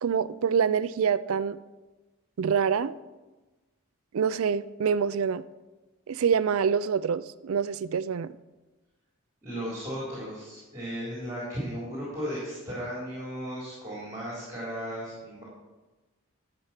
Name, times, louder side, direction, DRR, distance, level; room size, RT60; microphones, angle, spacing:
voice 1, 0.0-1.6 2.4-2.9 4.1-5.4 6.1-8.3, right 6 dB, 75° right, 15 dB, 0.4 m, -26 dB
voice 2, 9.4-15.4, equal, 15° right, -7 dB, 3.7 m, -35 dB
11.5 x 7.0 x 5.9 m, 1.1 s
head